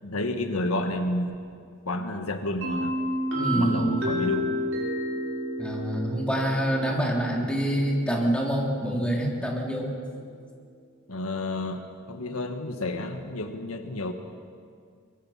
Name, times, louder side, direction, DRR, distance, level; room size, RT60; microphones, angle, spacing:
voice 1, 0.0-1.3 1.8-2.9 3.5-4.6 11.1-14.1, left 1 dB, 85° left, 6 dB, 1.6 m, -30 dB
sound 1, 2.6-10.3, equal, 70° right, 6.9 m, -32 dB
voice 2, 3.4-4.0 5.6-9.9, equal, 5° left, -2 dB, 3.5 m, -26 dB
23.5 x 23.0 x 5.8 m, 2.2 s
head